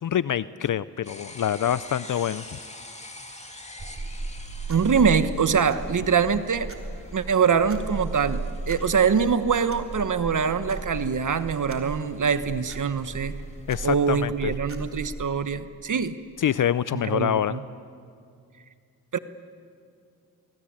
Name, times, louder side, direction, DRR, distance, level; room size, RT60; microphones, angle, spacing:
voice 1, 0.0-2.6 13.7-14.5 16.4-17.6, left 10 dB, 55° left, 16 dB, 0.6 m, -26 dB
sound 1, 1.0-13.7, left 2 dB, 20° left, 2.8 m, -47 dB
sound 2, 3.8-15.2, right 2 dB, 35° right, 3.7 m, -36 dB
voice 2, 4.7-6.7 7.1-13.3 13.8-16.1 16.9-17.6 19.1-19.2, right 6 dB, 55° right, 12 dB, 1.2 m, -24 dB
23.5 x 22.0 x 8.8 m, 2.3 s
cardioid pair, 60°, 37 cm